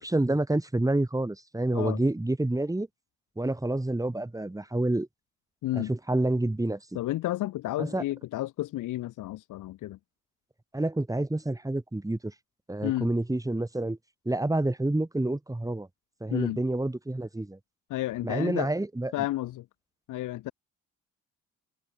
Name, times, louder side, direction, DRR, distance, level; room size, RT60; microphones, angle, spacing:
voice 1, 0.0-2.9 3.4-5.1 5.7-6.8 7.8-8.0 10.7-12.3 12.7-14.0 14.3-15.9 16.2-17.6 18.2-19.1, right 2 dB, 10° right, 6.9 m, -28 dB
voice 2, 6.9-10.0 12.8-13.1 16.3-16.6 17.9-18.7 19.1-19.7 20.1-20.5, left 15 dB, 85° left, 3.6 m, -31 dB
open air
cardioid pair, 90°, 30 cm